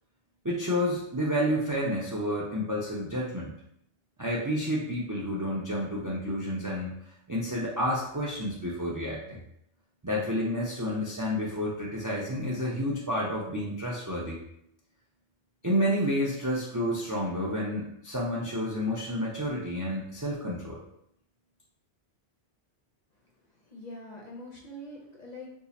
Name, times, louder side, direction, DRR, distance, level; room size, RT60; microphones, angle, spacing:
voice 1, 0.4-3.5 4.2-6.9 7.3-9.4 10.0-14.4 15.6-20.8, equal, 30° right, -4 dB, 0.3 m, -30 dB
voice 2, 23.2-25.5, left 1 dB, 45° left, -2 dB, 0.7 m, -44 dB
2.7 x 2.4 x 4.0 m, 0.74 s
omnidirectional pair, 1.1 m